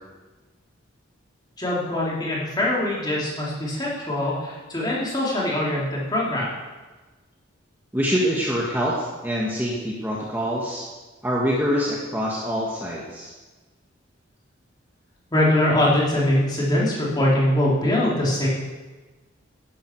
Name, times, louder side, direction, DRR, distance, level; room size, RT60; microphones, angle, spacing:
voice 1, 1.6-6.5 15.3-18.5, left 1 dB, 20° left, -5 dB, 3.1 m, -22 dB
voice 2, 7.9-10.8 11.2-13.3, equal, 10° right, -4 dB, 1.5 m, -25 dB
11.5 x 11.0 x 4.6 m, 1.2 s
head